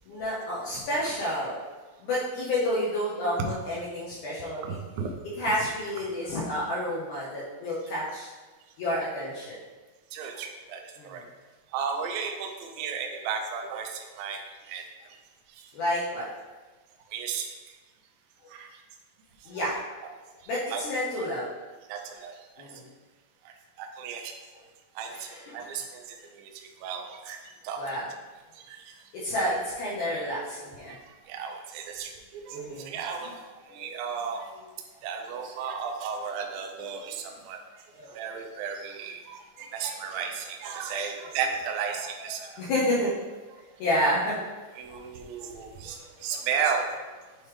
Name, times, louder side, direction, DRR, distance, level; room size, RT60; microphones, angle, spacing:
voice 1, 0.1-1.6 2.0-4.8 5.4-8.3 8.8-9.6 11.0-11.2 15.7-16.3 19.5-19.8 20.5-21.5 22.6-22.8 25.1-25.7 27.8-28.1 29.1-30.9 32.5-32.9 33.8-34.0 37.9-38.2 39.8-40.1 42.3-43.1 43.8-44.5 44.9-45.0 45.8-45.9 46.3-46.4, left 1 dB, 85° left, -7 dB, 1.7 m, -30 dB
voice 2, 4.6-5.2 10.1-11.2 11.7-14.8 15.6-15.7 17.1-17.5 18.5-18.7 19.6-19.7 20.7-20.8 21.9-22.7 23.5-24.3 25.0-28.0 28.6-28.9 30.9-33.3 33.7-34.5 35.0-37.6 38.2-42.4 44.8-46.9, right 6 dB, 90° right, 3 dB, 2.0 m, -34 dB
9.3 x 3.2 x 3.3 m, 1.3 s
omnidirectional pair, 4.9 m